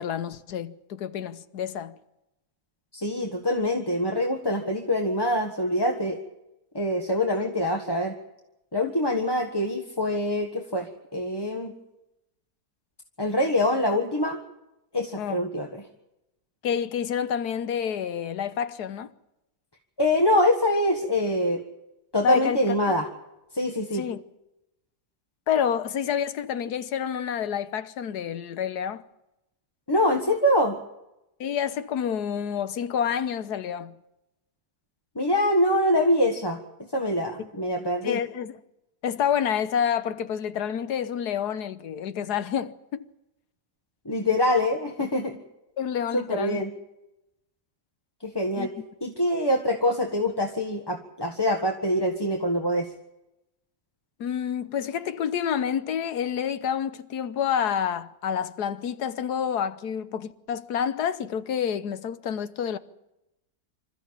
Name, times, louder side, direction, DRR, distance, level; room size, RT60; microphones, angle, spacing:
voice 1, 0.0-1.9 15.2-15.4 16.6-19.1 22.2-22.7 23.9-24.2 25.5-29.0 31.4-33.9 38.0-38.5 39.0-43.1 45.8-46.6 48.6-48.7 54.2-62.8, left 8 dB, 80° left, 1.5 m, -28 dB
voice 2, 2.9-6.2 6.7-8.1 8.7-11.7 13.2-14.4 14.9-15.9 20.0-21.6 22.1-23.1 23.5-24.1 29.9-30.8 35.1-36.6 36.9-38.2 44.0-45.4 46.1-46.7 48.2-48.7 49.0-52.9, left 1 dB, 15° left, 1.5 m, -24 dB
26.5 x 13.5 x 8.9 m
omnidirectional pair, 1.7 m